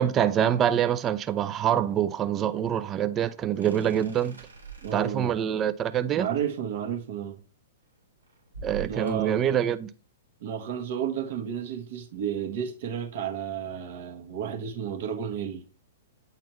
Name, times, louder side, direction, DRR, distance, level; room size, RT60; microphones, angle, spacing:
voice 1, 0.0-4.4 4.9-6.3 8.6-9.9, right 9 dB, 25° right, 0.5 m, -25 dB
sound 1, 3.5-5.3 7.8-9.4, right 6 dB, 80° right, 2.4 m, -43 dB
voice 2, 4.8-5.4 6.1-7.4 8.8-9.4 10.4-15.6, right 8 dB, 55° right, 1.5 m, -32 dB
9.2 x 4.1 x 3.0 m
figure-of-eight pair, 110°, 0 cm